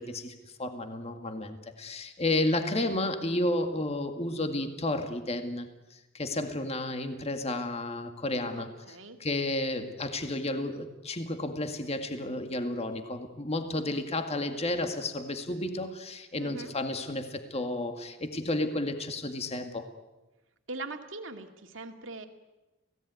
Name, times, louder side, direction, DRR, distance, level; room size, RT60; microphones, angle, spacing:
voice 1, 0.0-19.9, left 2 dB, 35° left, 6 dB, 2.1 m, -32 dB
voice 2, 8.6-9.2 16.4-16.7 20.7-22.3, right 2 dB, 70° right, 5 dB, 2.4 m, -41 dB
28.0 x 17.5 x 9.5 m, 1.1 s
head